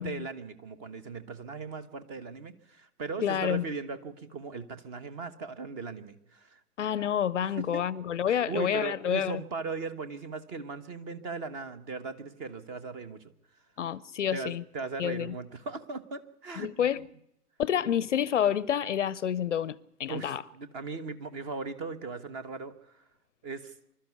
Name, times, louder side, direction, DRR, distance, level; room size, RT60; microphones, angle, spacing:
voice 1, 0.0-6.6 7.4-7.8 8.3-13.3 14.3-16.9 20.1-22.7 23.4-23.7, right 4 dB, 25° right, 1.2 m, -38 dB
voice 2, 3.2-3.6 6.8-9.4 13.8-14.6 15.0-15.3 16.6-17.1 17.6-20.4, left 9 dB, 50° left, 0.7 m, -29 dB
25.5 x 12.5 x 8.4 m
figure-of-eight pair, 130°, 46 cm